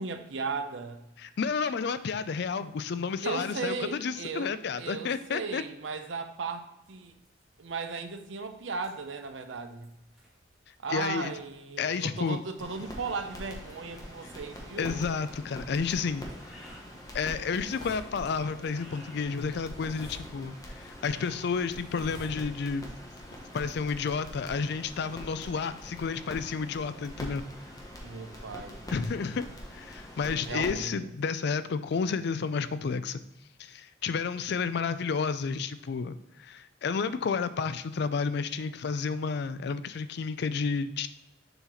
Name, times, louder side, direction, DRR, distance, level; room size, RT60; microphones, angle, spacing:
voice 1, 0.0-1.0 3.2-4.5 4.8-7.1 7.6-9.9 10.8-15.1 28.0-28.8 30.4-31.1, right 4 dB, 80° right, 8 dB, 0.7 m, -36 dB
voice 2, 1.2-5.6 10.9-11.3 11.8-12.4 14.8-16.7 17.1-22.8 23.5-27.4 28.9-29.4 29.7-33.2 33.6-41.1, left 5 dB, 60° left, 13 dB, 0.4 m, -31 dB
sound 1, 6.8-26.1, equal, ahead, 1.9 m, -56 dB
sound 2, 12.6-30.7, equal, 20° left, 1.2 m, -44 dB
7.0 x 4.0 x 4.3 m, 0.90 s
head